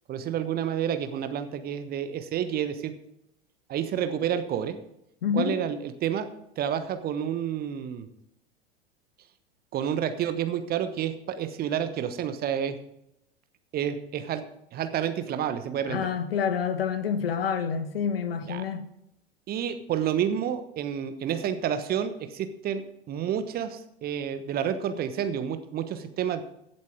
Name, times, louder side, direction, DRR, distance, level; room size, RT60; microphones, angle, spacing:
voice 1, 0.1-2.9 3.7-4.7 5.3-6.3 6.6-8.1 9.7-12.8 13.7-14.4 14.7-16.1 18.5-18.6 19.5-26.4, right 9 dB, 30° right, 1.1 m, -29 dB
voice 2, 5.2-5.6 15.9-18.9, left 7 dB, 65° left, 1.3 m, -28 dB
16.0 x 7.5 x 4.8 m
figure-of-eight pair, 85°, 31 cm